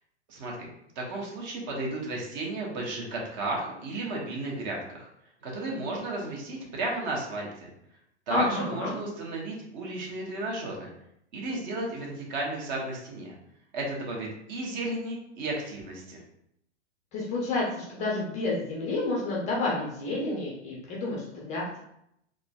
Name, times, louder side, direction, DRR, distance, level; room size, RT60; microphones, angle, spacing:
voice 1, 0.3-0.7 1.0-5.1 5.4-7.7 8.3-10.9 11.3-13.3 13.7-16.2, right 2 dB, 40° right, -2 dB, 1.0 m, -33 dB
voice 2, 8.3-8.9 17.1-21.8, left 2 dB, 20° left, -4 dB, 0.5 m, -30 dB
3.6 x 2.1 x 2.3 m, 0.76 s
figure-of-eight pair, 110°, 36 cm